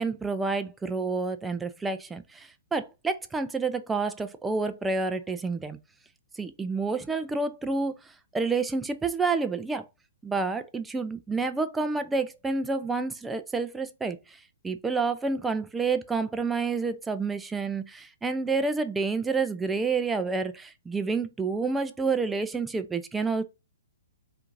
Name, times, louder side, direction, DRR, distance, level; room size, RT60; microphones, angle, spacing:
voice 1, 0.0-5.8 6.3-9.9 10.2-23.4, right 4 dB, 10° right, 0.3 m, -29 dB
4.3 x 2.5 x 2.5 m
hypercardioid pair, 130°, 0 cm